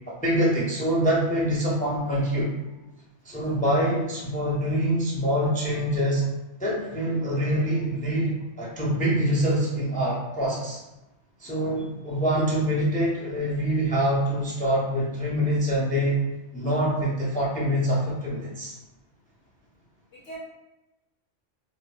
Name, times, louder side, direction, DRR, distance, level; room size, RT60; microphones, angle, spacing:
voice 1, 0.1-2.5 3.2-6.2 6.6-10.8 11.4-16.2 16.5-18.7, equal, 10° left, -4 dB, 0.4 m, -25 dB
voice 2, 11.5-11.9 20.1-20.4, right 3 dB, 75° left, -7 dB, 1.4 m, -44 dB
4.5 x 2.0 x 2.5 m, 1.0 s
omnidirectional pair, 1.3 m